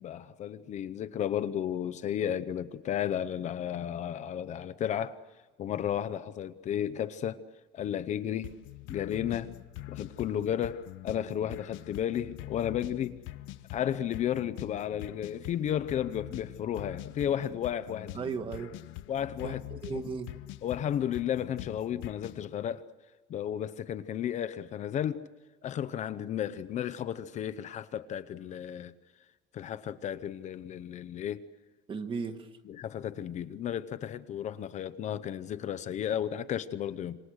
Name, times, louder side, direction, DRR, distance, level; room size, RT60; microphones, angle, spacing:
voice 1, 0.0-5.2 5.6-7.4 7.7-8.5 8.9-9.5 9.9-13.2 13.7-18.1 19.1-19.6 19.9-20.1 20.6-22.8 23.3-25.3 25.6-28.9 29.5-31.5 32.7-37.2, left 10 dB, 40° left, 0.8 m, -33 dB
sound 1, 8.4-22.4, left 16 dB, 90° left, 1.0 m, -44 dB
voice 2, 18.1-18.7 19.4-20.3 31.9-32.5, right 5 dB, 25° right, 1.6 m, -36 dB
27.5 x 26.0 x 6.5 m
cardioid pair, 180°, 19 cm